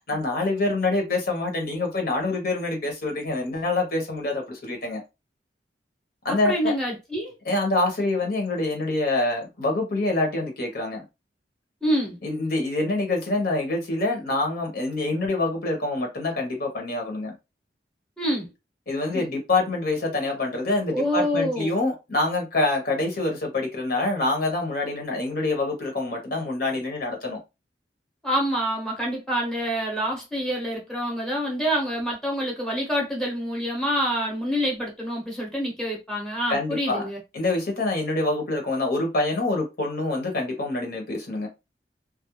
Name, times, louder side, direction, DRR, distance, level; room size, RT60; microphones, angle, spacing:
voice 1, 0.1-5.0 6.2-6.7 7.5-11.0 12.2-17.3 18.9-27.4 36.5-37.0 37.3-41.5, left 2 dB, 55° left, 0.9 m, -26 dB
voice 2, 6.3-7.3 11.8-12.2 18.2-18.5 19.1-19.2 20.9-21.8 28.2-37.2, equal, 5° left, 0.8 m, -27 dB
2.3 x 2.0 x 3.0 m
head